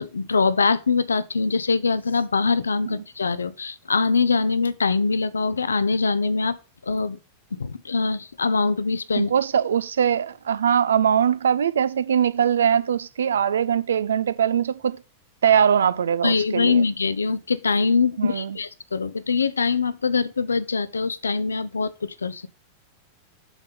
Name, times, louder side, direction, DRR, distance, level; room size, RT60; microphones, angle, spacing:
voice 1, 0.0-6.6 6.8-7.2 7.5-9.3 16.2-22.5, left 4 dB, 75° left, 0.5 m, -23 dB
voice 2, 9.2-15.0 15.4-16.9 18.2-18.6, right 8 dB, 65° right, 0.4 m, -21 dB
7.1 x 4.1 x 5.2 m
figure-of-eight pair, 90°, 0 cm